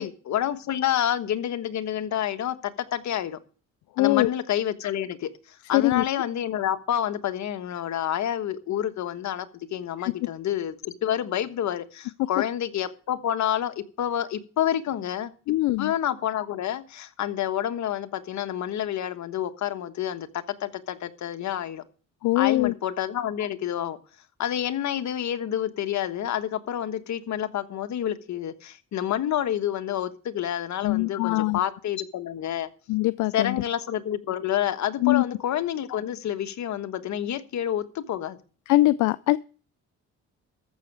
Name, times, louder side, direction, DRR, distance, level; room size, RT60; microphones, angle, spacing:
voice 1, 0.0-3.4 4.0-5.3 5.7-15.3 15.8-21.8 22.3-24.0 24.4-32.7 33.3-38.4, left 10 dB, 70° left, 1.3 m, -28 dB
voice 2, 4.0-4.3 5.7-6.0 10.0-10.1 15.5-15.9 22.2-22.7 30.8-31.6 32.9-33.6 35.0-35.2 38.7-39.4, left 18 dB, 85° left, 0.5 m, -22 dB
14.0 x 6.4 x 7.3 m
cardioid pair, 90°, 30 cm